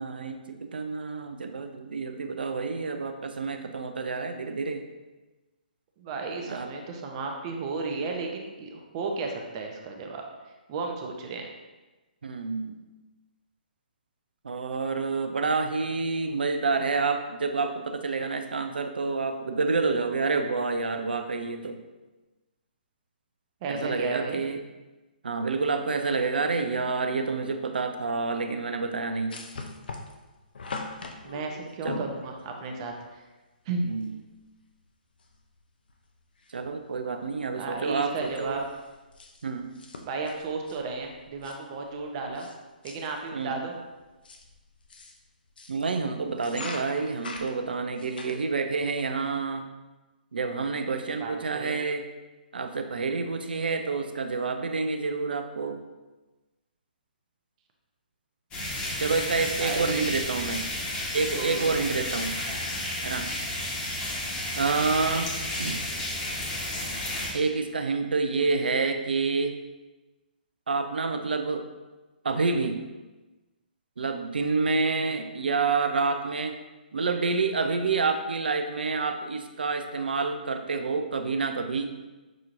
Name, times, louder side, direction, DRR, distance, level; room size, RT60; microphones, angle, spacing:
voice 1, 0.0-4.8 6.5-6.7 12.2-12.8 14.4-21.8 23.7-24.6 25.2-29.4 31.8-32.1 33.8-34.2 36.5-38.6 39.4-39.7 43.3-43.7 45.7-49.7 50.3-52.1 52.5-55.8 59.0-60.7 61.1-62.4 63.0-63.3 64.6-65.3 65.6-65.8 67.3-69.5 70.7-71.6 72.2-72.8 74.0-76.5 76.9-81.9, right 4 dB, 80° right, 7 dB, 0.4 m, -28 dB
voice 2, 6.0-10.2 10.7-11.5 23.6-24.4 31.2-33.2 33.7-33.9 37.4-38.6 40.0-42.5 42.8-43.8 51.2-51.8 59.6-60.1 61.3-61.8 75.0-75.2, right 4 dB, 35° right, 2 dB, 0.6 m, -34 dB
sound 1, 29.3-32.9 34.0-34.1 34.4-34.5 35.2-35.6 35.9-36.7 37.1-37.3 37.6-42.6 42.8-43.3 43.9-45.8 46.3-48.4, left 3 dB, 70° left, 0.5 m, -42 dB
sound 2, 58.5-67.3, left 1 dB, 20° left, 1.1 m, -32 dB
6.1 x 2.8 x 2.5 m, 1.2 s
hypercardioid pair, 140°, 5 cm